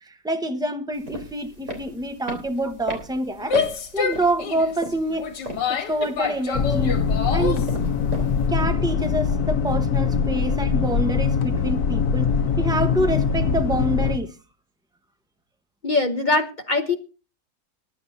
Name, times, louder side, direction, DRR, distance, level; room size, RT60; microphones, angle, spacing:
voice 1, 0.0-3.6 3.9-5.3 5.7-7.0 7.3-7.7 8.5-12.3 12.6-14.3, right 1 dB, 5° right, 0.9 m, -26 dB
sound 1, 0.9-8.5, right 1 dB, 40° right, 3.7 m, -38 dB
Female speech woman speaking / Yell, 3.4-7.7, left 6 dB, 80° left, 2.1 m, -27 dB
sound 2, 6.5-14.2, left 6 dB, 65° left, 1.5 m, -22 dB
voice 2, 15.8-17.0, left 3 dB, 35° left, 0.8 m, -22 dB
20.0 x 11.5 x 2.8 m
omnidirectional pair, 1.9 m